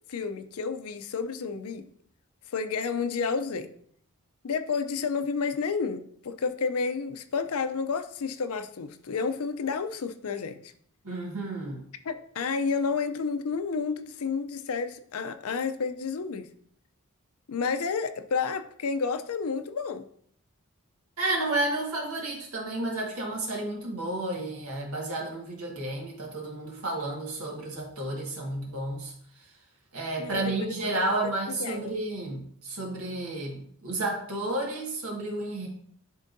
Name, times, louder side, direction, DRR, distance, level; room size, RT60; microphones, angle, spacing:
voice 1, 0.1-1.8 2.5-3.7 4.4-10.7 12.0-16.5 17.5-20.0 30.2-31.1 31.6-31.9, left 5 dB, 80° left, 10 dB, 0.5 m, -30 dB
voice 2, 11.0-11.9 21.2-29.1 29.9-35.7, right 2 dB, 80° right, -1 dB, 1.7 m, -31 dB
11.0 x 3.7 x 2.6 m, 0.64 s
head